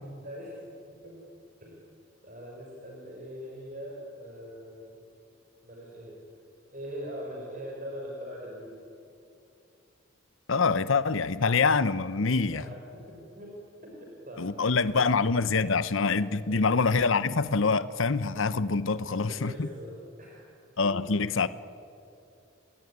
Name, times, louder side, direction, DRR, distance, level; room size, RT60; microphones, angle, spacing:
voice 1, 0.2-0.6 1.0-1.2 1.6-1.7 2.2-5.0 5.6-6.2 6.7-8.9 12.1-13.5 13.8-14.7 14.9-15.0 16.4-16.8 18.8-19.9 20.2-20.5 20.8-21.1, equal, 40° right, -2 dB, 5.0 m, -42 dB
voice 2, 10.5-12.7 14.4-19.7 20.8-21.5, left 4 dB, 70° left, 14 dB, 0.8 m, -25 dB
29.0 x 21.5 x 9.6 m, 2.6 s
head